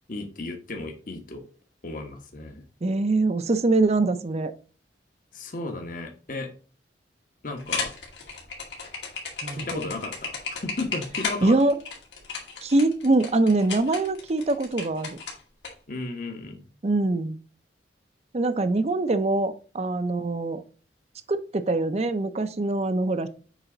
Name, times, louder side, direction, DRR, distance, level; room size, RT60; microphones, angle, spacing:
voice 1, 0.1-1.4 1.8-2.6 5.3-6.5 7.4-7.9 9.5-11.6 15.9-16.6, left 2 dB, 50° left, 4 dB, 1.1 m, -34 dB
voice 2, 2.8-4.5 9.4-9.8 11.4-11.7 12.6-15.1 16.8-17.4 18.3-20.6 21.3-23.3, right 2 dB, 35° right, 11 dB, 0.6 m, -23 dB
sound 1, 7.6-15.7, left 4 dB, 90° left, 2.2 m, -34 dB
8.2 x 3.4 x 3.9 m, 0.39 s
head